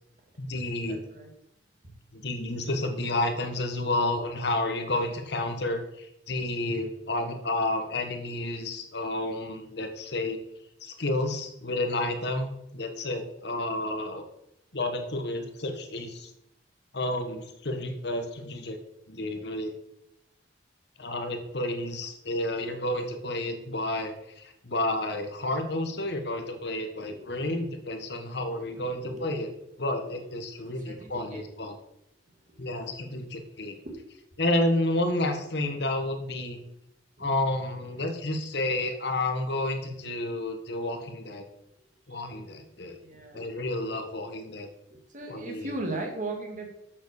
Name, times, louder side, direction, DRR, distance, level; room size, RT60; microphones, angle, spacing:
voice 1, 0.4-1.0 2.1-10.4 10.8-14.2 14.7-16.3 16.9-18.8 19.1-19.7 21.0-29.5 29.8-31.8 32.6-33.8 34.4-36.6 37.2-41.4 42.1-43.0 43.3-44.7 45.3-45.7, left 1 dB, 65° left, 6 dB, 1.5 m, -30 dB
voice 2, 0.9-1.3 1.8-1.9 22.6-22.7 27.0-27.7 28.6-29.4 30.7-31.4 32.5-32.8 33.8-33.9 37.2-37.3 42.1-42.4 43.0-43.5 44.9-46.7, right 2 dB, 45° right, 2 dB, 2.4 m, -39 dB
8.2 x 6.5 x 6.6 m, 0.81 s
head